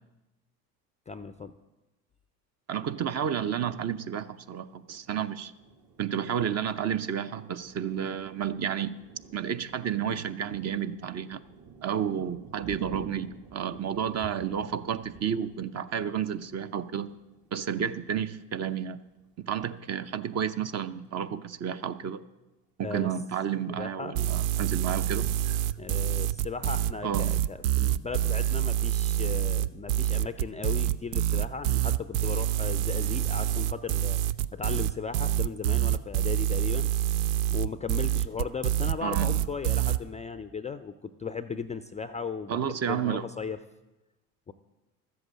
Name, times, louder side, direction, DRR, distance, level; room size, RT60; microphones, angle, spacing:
voice 1, 1.1-1.6 22.8-23.1 23.8-24.1 25.8-34.2 34.5-36.9 37.5-43.6 44.5-44.6, left 5 dB, 15° left, 11 dB, 0.4 m, -36 dB
voice 2, 2.7-5.5 6.0-9.0 9.3-11.5 11.8-17.1 17.5-19.0 19.4-22.2 22.8-25.6 27.0-27.3 39.0-39.4 42.5-43.2, right 8 dB, 35° right, 12 dB, 0.7 m, -31 dB
Thunder, 4.9-19.2 19.7-19.9 20.2-20.8, right 4 dB, 50° right, 2.1 m, -50 dB
sound 1, 24.2-40.0, right 12 dB, 75° right, 0.6 m, -26 dB
13.0 x 8.0 x 7.4 m, 1.0 s
hypercardioid pair, 75°, 45 cm